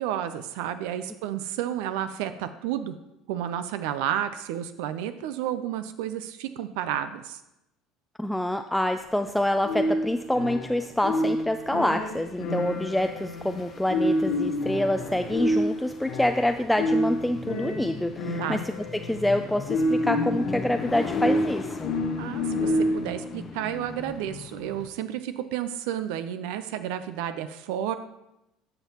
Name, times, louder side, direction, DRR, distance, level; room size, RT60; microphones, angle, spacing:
voice 1, 0.0-3.0 3.3-7.4 18.4-18.7 22.2-27.9, right 11 dB, 75° right, 11 dB, 0.4 m, -31 dB
voice 2, 8.2-21.9, left 1 dB, 5° left, 7 dB, 0.4 m, -26 dB
sound 1, 9.0-24.9, left 5 dB, 40° left, 0.7 m, -40 dB
sound 2, 9.6-23.2, left 1 dB, 75° left, 1.5 m, -28 dB
11.5 x 5.8 x 2.9 m, 0.89 s
hypercardioid pair, 75°, 0 cm